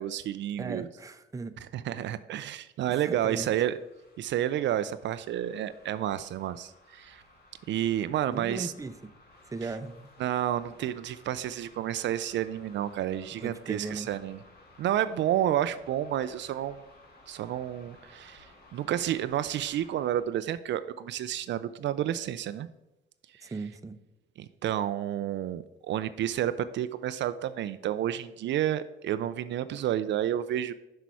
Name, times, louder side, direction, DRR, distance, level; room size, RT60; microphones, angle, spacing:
voice 1, 0.0-0.9 1.7-3.7 4.2-7.2 7.7-8.7 10.2-14.4 14.8-16.8 17.3-22.7 23.4-23.5 24.4-30.7, right 11 dB, 65° right, 13 dB, 0.4 m, -30 dB
voice 2, 0.6-1.5 2.0-2.1 2.9-3.5 8.3-9.1 9.5-10.1 13.4-14.1 23.4-24.0, right 3 dB, 15° right, 10 dB, 0.6 m, -37 dB
sound 1, 3.3-20.3, left 2 dB, 55° left, 2.0 m, -57 dB
6.1 x 5.6 x 4.7 m, 0.98 s
cardioid pair, 90°, 20 cm